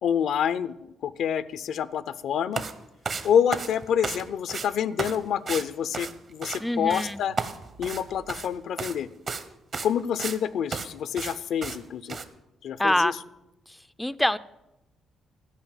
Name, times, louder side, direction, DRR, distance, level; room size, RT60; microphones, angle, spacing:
voice 1, 0.0-2.6 3.2-7.3 7.8-9.1 9.8-12.2 12.6-13.1, left 8 dB, 75° left, 16 dB, 0.5 m, -27 dB
sound 1, 2.5-2.7 3.0-4.2 4.5-4.7 5.0-5.2 5.5-5.7 5.9-6.6 6.9-7.1 7.4-8.5 8.8-9.0 9.3-9.5 9.7-10.4 10.7-10.9 11.2-11.4 11.6-11.8 12.1-12.2, right 4 dB, 45° right, 0.9 m, -32 dB
sound 2, 6.4-9.4, right 3 dB, 85° right, 2.7 m, -54 dB
voice 2, 6.6-7.2 12.8-13.1 13.7-14.4, left 1 dB, 5° left, 14 dB, 0.3 m, -25 dB
12.5 x 5.3 x 8.9 m, 0.92 s
cardioid pair, 90°, 0 cm